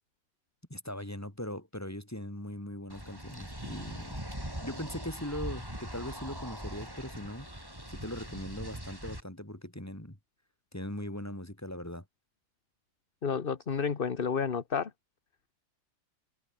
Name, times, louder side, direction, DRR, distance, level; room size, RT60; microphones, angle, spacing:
voice 1, 0.7-4.2 4.6-7.5 7.9-10.2 10.7-12.0, left 1 dB, 10° left, 4.3 m, -40 dB
sound 1, 2.9-9.2, equal, 15° right, 7.5 m, -41 dB
voice 2, 13.2-14.9, left 6 dB, 40° left, 1.3 m, -30 dB
omnidirectional pair, 1.6 m